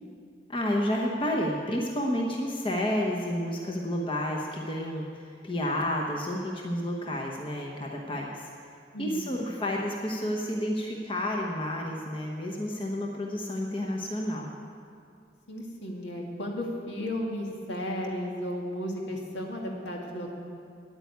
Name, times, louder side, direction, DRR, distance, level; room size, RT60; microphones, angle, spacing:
voice 1, 0.5-8.5 9.0-14.5, left 1 dB, 30° left, -1 dB, 1.0 m, -30 dB
voice 2, 8.9-9.3 15.5-20.3, equal, 70° left, 0 dB, 2.1 m, -34 dB
9.4 x 9.1 x 9.3 m, 2.4 s
head